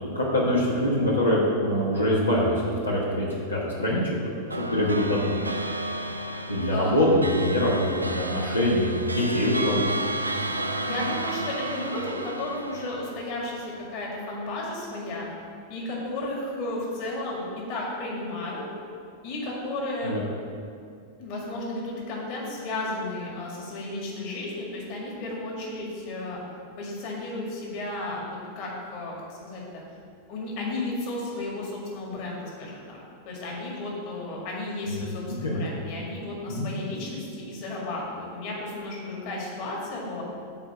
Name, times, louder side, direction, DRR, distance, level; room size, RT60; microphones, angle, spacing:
voice 1, 0.1-4.2 4.7-5.4 6.5-10.0 20.0-20.2 34.8-35.0 35.3-35.7 36.5-36.7, left 1 dB, 85° left, -6 dB, 1.3 m, -24 dB
sound 1, 4.5-14.1, right 1 dB, 80° right, 0.4 m, -32 dB
voice 2, 10.8-15.3 15.7-18.7 19.2-20.2 21.2-26.4 26.8-29.6 30.3-33.0 33.3-40.2, left 2 dB, 45° left, -3 dB, 1.9 m, -33 dB
7.4 x 4.5 x 7.0 m, 2.4 s
figure-of-eight pair, 90°, 0 cm